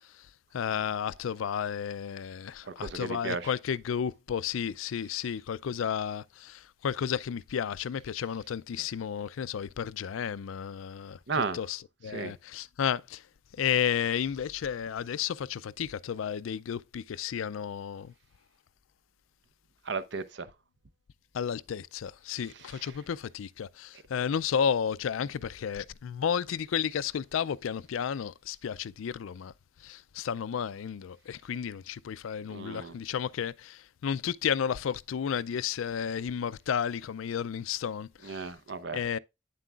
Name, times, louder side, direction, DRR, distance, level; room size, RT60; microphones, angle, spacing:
voice 1, 0.5-11.2 11.5-11.8 12.0-13.2 13.6-18.1 21.3-29.5 29.8-38.4 38.9-39.2, left 8 dB, 85° left, 0.4 m, -32 dB
voice 2, 2.6-3.5 11.3-11.6 12.1-12.3 19.8-20.5 22.5-23.0 32.5-33.0 38.2-39.0, right 4 dB, 60° right, 0.7 m, -35 dB
9.1 x 7.6 x 2.4 m
head